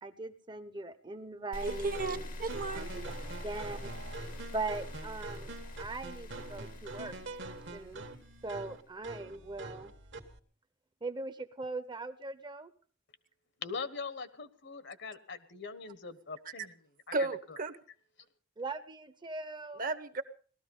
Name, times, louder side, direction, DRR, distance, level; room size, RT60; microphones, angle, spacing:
voice 1, 0.0-3.1 3.4-3.9 4.5-5.5 5.8-7.4 7.7-8.1 8.4-9.9 11.0-12.7 18.6-19.8, right 3 dB, 25° right, 13 dB, 0.8 m, -40 dB
sound 1, 1.5-8.7, left 1 dB, 40° left, 0.9 m, -44 dB
voice 2, 1.6-2.9 16.4-16.7 17.1-17.8 19.8-20.2, right 3 dB, 45° right, 11 dB, 1.0 m, -34 dB
sound 2, 1.7-10.4, right 2 dB, 60° right, 1.5 m, -45 dB
voice 3, 13.6-16.7 17.1-17.2, left 5 dB, 60° left, 13 dB, 1.2 m, -41 dB
18.5 x 13.5 x 5.4 m, 0.43 s
head